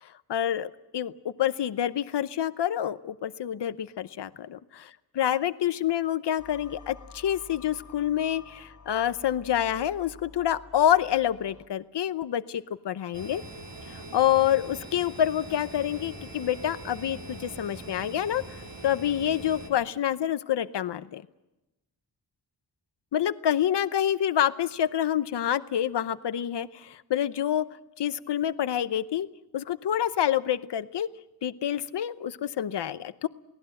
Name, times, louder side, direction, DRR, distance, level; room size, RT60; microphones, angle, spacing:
voice 1, 0.0-4.8 5.1-13.4 13.9-18.4 18.8-21.2 23.1-27.7 28.0-29.3 29.5-31.1 31.4-33.3, left 10 dB, 70° left, 14 dB, 0.8 m, -27 dB
sound 1, 6.4-11.7, left 4 dB, 45° left, 1.6 m, -50 dB
sound 2, 13.1-19.7, right 2 dB, 80° right, 4.3 m, -42 dB
28.5 x 18.5 x 7.8 m, 1.0 s
wide cardioid pair, 135°, 42 cm